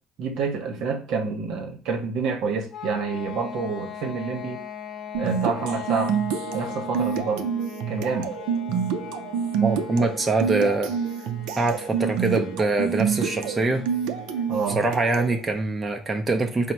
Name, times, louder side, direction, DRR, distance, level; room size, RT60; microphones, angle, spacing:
voice 1, 0.2-4.6 5.2-6.2 6.5-7.5 7.9-8.4 14.5-14.8, right 5 dB, 65° right, 0.8 m, -28 dB
sound 1, 2.7-15.5, left 8 dB, 40° left, 0.6 m, -39 dB
sound 2, 5.1-15.4, right 7 dB, 85° right, 0.4 m, -28 dB
voice 2, 9.6-10.9 11.6-13.8 14.8-16.7, right 3 dB, 20° right, 0.5 m, -24 dB
3.9 x 2.1 x 4.4 m
cardioid pair, 120°, 0 cm